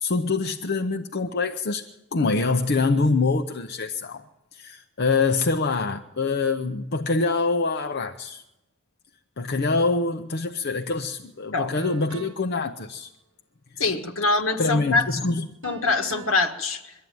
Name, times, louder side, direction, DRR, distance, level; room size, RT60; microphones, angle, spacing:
voice 1, 0.0-4.2 4.5-8.4 9.4-13.1 14.6-15.5, left 3 dB, 55° left, 0.7 m, -25 dB
sound 1, 11.0-11.1 11.8-12.6 15.6-16.4, right 3 dB, 65° right, 1.2 m, -42 dB
voice 2, 13.8-15.2 15.6-16.9, left 3 dB, 75° left, 1.8 m, -24 dB
22.5 x 13.5 x 9.4 m
head